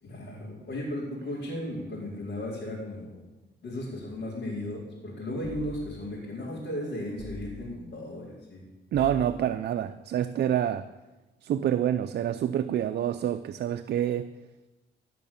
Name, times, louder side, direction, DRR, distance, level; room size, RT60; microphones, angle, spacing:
voice 1, 0.0-3.2 3.6-8.6, left 1 dB, 60° left, -7 dB, 4.1 m, -35 dB
sound 1, 5.4-6.2 7.2-7.9 8.9-9.7, left 2 dB, 35° left, 3.8 m, -44 dB
voice 2, 8.9-10.9 11.4-14.3, right 10 dB, 55° right, 10 dB, 0.5 m, -27 dB
16.5 x 5.9 x 7.1 m, 1.1 s
cardioid pair, 90°, 20 cm